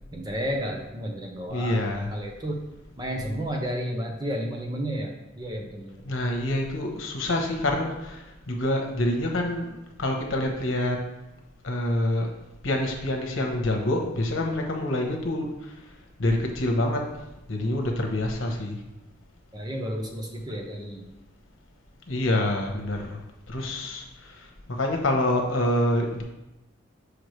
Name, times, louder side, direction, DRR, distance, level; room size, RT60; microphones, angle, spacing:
voice 1, 0.1-1.8 2.1-2.6 3.0-6.1 19.5-21.0, equal, 20° right, 1 dB, 0.7 m, -32 dB
voice 2, 1.5-2.1 6.1-11.0 11.6-12.3 12.6-15.7 16.2-17.0 17.5-18.8 22.1-23.2 23.5-26.2, left 1 dB, 80° left, 2 dB, 1.0 m, -26 dB
6.3 x 4.8 x 3.2 m, 0.97 s
head